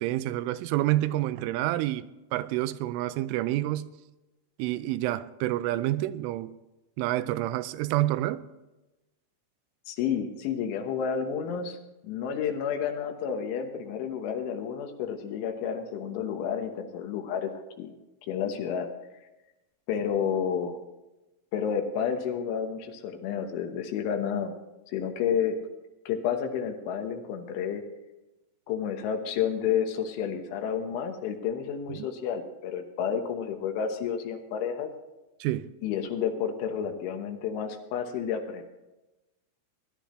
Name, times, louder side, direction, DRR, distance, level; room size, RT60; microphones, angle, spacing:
voice 1, 0.0-4.0 4.6-6.6 7.0-8.4 31.9-32.1 35.4-35.7, right 15 dB, 85° right, 3.1 m, -28 dB
voice 2, 9.9-11.8 12.0-17.5 17.8-17.9 18.3-18.9 19.9-20.8 21.5-24.5 24.9-25.6 26.1-27.8 28.7-34.9 35.8-38.6, left 7 dB, 75° left, 3.5 m, -30 dB
20.0 x 11.5 x 3.1 m
omnidirectional pair, 5.6 m